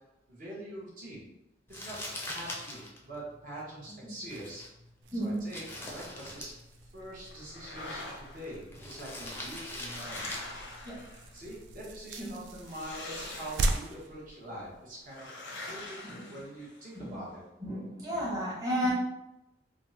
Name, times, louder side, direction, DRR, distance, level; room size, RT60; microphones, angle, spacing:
voice 1, 0.3-1.2 1.7-2.0 2.3-4.6 5.1-6.6 6.9-10.3 11.3-15.3 15.7-16.0 16.3-17.4, right 1 dB, 50° right, -5 dB, 0.8 m, -44 dB
Crumpling crinkling, 1.7-11.9, left 1 dB, 15° left, 0.5 m, -45 dB
sound 1, 5.0-15.1, right 2 dB, 80° right, 0.3 m, -40 dB
voice 2, 5.1-5.4 10.8-11.0 12.3-12.4 16.0-16.2 17.0-17.2 17.6-18.9, equal, 20° right, -7 dB, 0.8 m, -33 dB
sound 2, 7.3-8.6 9.4-11.5 12.6-14.0 15.1-17.0, left 2 dB, 90° left, 0.7 m, -44 dB
3.4 x 2.0 x 2.7 m, 0.93 s
head